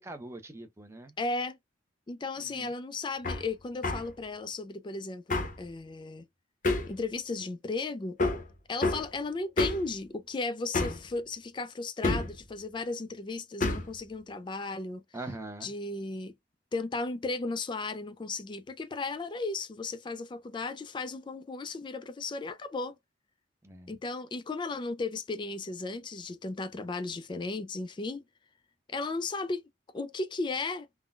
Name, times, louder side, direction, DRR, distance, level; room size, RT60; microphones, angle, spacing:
voice 1, 0.0-1.2 2.4-2.7 15.1-15.7 23.6-23.9, right 2 dB, 15° right, 0.6 m, -42 dB
voice 2, 1.2-1.6 2.1-6.3 6.9-8.2 8.7-15.0 15.6-16.3 16.7-23.0 23.9-28.2 28.9-29.6 29.9-30.9, left 3 dB, 25° left, 0.3 m, -35 dB
Hammer, 3.2-3.4 3.8-4.1 5.3-5.6 6.6-7.0 8.2-8.5 8.8-9.1 9.6-9.9 10.7-11.1 12.0-12.4 13.6-13.9, left 2 dB, 45° left, 0.7 m, -28 dB
3.6 x 2.1 x 2.3 m
head